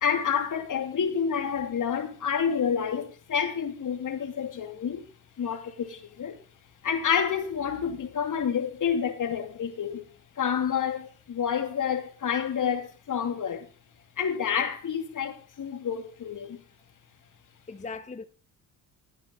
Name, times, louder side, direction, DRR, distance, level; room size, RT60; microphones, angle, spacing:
voice 1, 0.0-5.1 5.4-6.4 6.8-10.0 10.4-13.7 14.2-16.6, left 7 dB, 50° left, 2.6 m, -29 dB
voice 2, 5.4-5.8 17.7-18.3, left 4 dB, 20° left, 0.8 m, -40 dB
16.5 x 9.6 x 3.9 m
cardioid pair, 80°, 39 cm